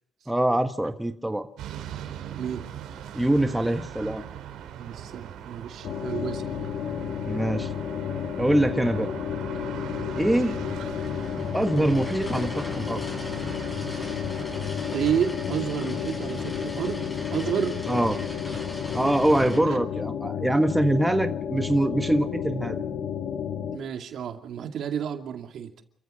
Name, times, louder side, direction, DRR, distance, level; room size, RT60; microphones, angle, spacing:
voice 1, 0.3-1.5 3.1-4.2 7.2-7.7 8.4-9.1 10.2-10.6 11.5-13.0 17.9-18.2 18.9-22.8, right 1 dB, 5° right, 8 dB, 1.6 m, -24 dB
sound 1, 1.6-15.4, right 10 dB, 85° right, 3.2 m, -41 dB
voice 2, 2.3-2.6 4.7-6.4 10.8-10.9 14.9-17.8 18.5-18.6 19.2-19.5 23.7-25.8, right 8 dB, 70° right, 6 dB, 2.5 m, -30 dB
sound 2, 5.8-23.8, left 8 dB, 75° left, 1.9 m, -32 dB
sound 3, 9.9-19.6, left 1 dB, 20° left, 8.0 m, -39 dB
29.5 x 14.5 x 6.5 m, 0.67 s
cardioid pair, 90°, 0 cm